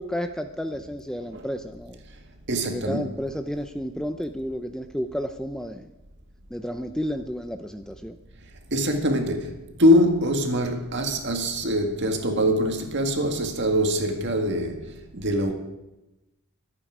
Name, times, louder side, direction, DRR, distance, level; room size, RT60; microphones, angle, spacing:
voice 1, 0.0-2.0 2.6-5.9 6.5-8.2, equal, 5° left, 0.5 m, -31 dB
voice 2, 2.5-3.1 8.7-15.5, equal, 55° right, 2.0 m, -23 dB
25.0 x 8.9 x 4.9 m
head